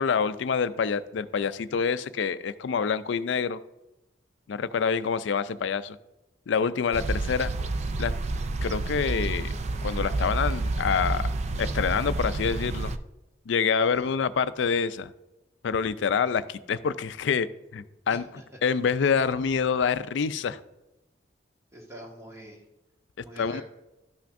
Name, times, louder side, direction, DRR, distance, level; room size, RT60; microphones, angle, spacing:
voice 1, 0.0-3.6 4.5-6.0 6.5-7.7 8.0-8.1 8.6-9.5 9.8-11.3 11.6-12.9 13.5-15.1 15.6-17.5 17.7-18.2 18.6-20.6 23.4-23.6, left 6 dB, 70° left, 0.4 m, -26 dB
sound 1, 6.9-13.0, right 2 dB, 35° right, 0.3 m, -29 dB
voice 2, 13.8-14.2 18.1-18.4 21.7-22.6 23.2-23.6, equal, 15° right, 1.5 m, -45 dB
12.5 x 5.8 x 2.6 m
head